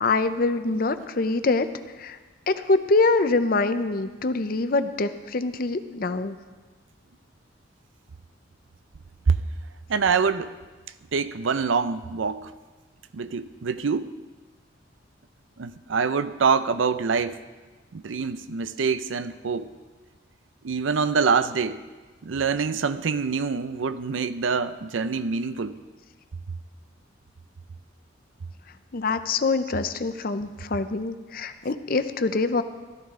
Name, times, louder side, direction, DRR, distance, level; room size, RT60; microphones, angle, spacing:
voice 1, 0.0-1.7 2.0-2.2 2.5-6.4 28.9-32.6, left 3 dB, 45° left, 10 dB, 0.6 m, -24 dB
voice 2, 9.9-10.6 11.1-12.5 13.1-14.1 15.6-17.4 17.9-19.7 20.6-21.8 22.2-25.8, right 5 dB, 80° right, 13 dB, 0.5 m, -25 dB
14.0 x 13.5 x 3.7 m, 1.3 s
head